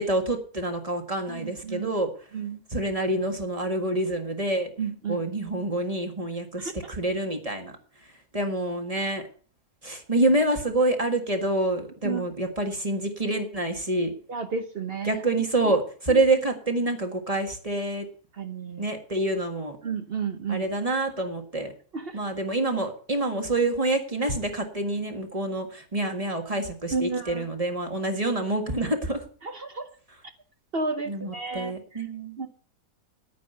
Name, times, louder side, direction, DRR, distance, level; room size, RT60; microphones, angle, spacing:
voice 1, 0.0-2.1 2.7-4.7 5.1-7.7 8.3-9.2 9.8-14.1 15.1-18.1 18.8-19.8 20.5-21.7 22.1-29.2 31.1-32.4, right 2 dB, 25° right, 4 dB, 1.7 m, -27 dB
voice 2, 1.3-1.9 2.3-2.6 4.8-5.2 6.6-6.9 12.0-12.2 14.3-15.2 16.1-16.2 18.3-18.9 19.8-20.7 21.9-22.2 26.9-27.4 29.4-29.9 30.7-32.1 32.4-32.5, right 5 dB, 45° right, 8 dB, 1.0 m, -32 dB
9.9 x 9.4 x 6.6 m, 0.43 s
omnidirectional pair, 1.7 m